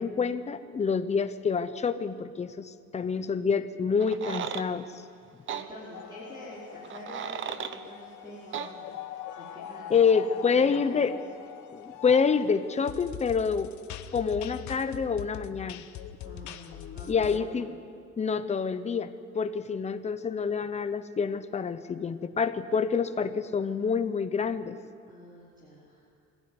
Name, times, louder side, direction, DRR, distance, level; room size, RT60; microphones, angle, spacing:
voice 1, 0.0-4.9 9.9-11.1 11.7-13.7 14.1-15.8 17.1-17.7 18.2-24.8, left 5 dB, 20° left, 11 dB, 0.9 m, -27 dB
sound 1, 4.0-4.7 5.5-5.7 6.8-7.8 8.5-8.7, right 8 dB, 40° right, 0.9 m, -35 dB
voice 2, 5.4-9.0 9.3-11.1 16.2-17.7 25.1-26.0, equal, 15° right, -8 dB, 5.1 m, -47 dB
sound 2, 5.9-17.4, left 10 dB, 70° left, 1.2 m, -42 dB
23.0 x 17.5 x 9.8 m, 2.4 s
cardioid pair, 170°, 30 cm